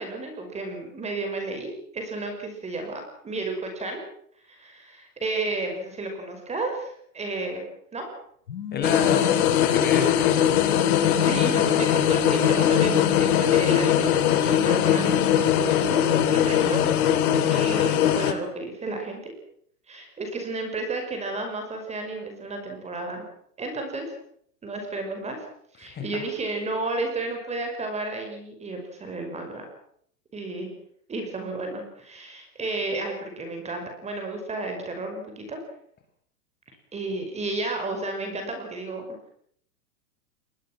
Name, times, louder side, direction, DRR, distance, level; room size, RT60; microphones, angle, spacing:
voice 1, 0.0-4.0 4.5-7.6 7.9-8.1 9.6-9.9 11.0-16.8 17.5-19.3 19.9-23.3 23.6-24.1 24.6-25.4 25.8-29.7 30.3-30.7 31.1-35.6 36.9-39.0, right 2 dB, 15° right, 4 dB, 5.6 m, -32 dB
Telephone, 8.5-9.5 10.5-11.5 12.5-13.5 14.5-15.5, left 6 dB, 85° left, 2.6 m, -34 dB
voice 2, 8.7-10.5 25.8-26.1, left 4 dB, 20° left, 5 dB, 5.7 m, -29 dB
sound 1, 8.8-18.3, left 10 dB, 65° left, 3.5 m, -21 dB
26.5 x 21.0 x 6.1 m, 0.66 s
hypercardioid pair, 145°, 46 cm